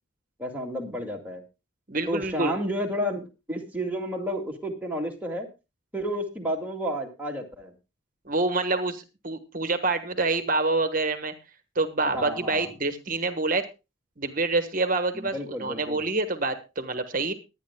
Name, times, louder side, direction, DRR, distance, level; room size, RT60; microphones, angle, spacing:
voice 1, 0.4-1.4 2.1-5.5 5.9-7.7 12.1-12.7 15.1-16.0, equal, 10° right, 0 dB, 2.1 m, -31 dB
voice 2, 1.9-2.5 8.2-11.3 11.7-13.6 14.2-17.3, right 3 dB, 40° right, 8 dB, 1.2 m, -27 dB
23.0 x 9.6 x 2.2 m, 0.28 s
head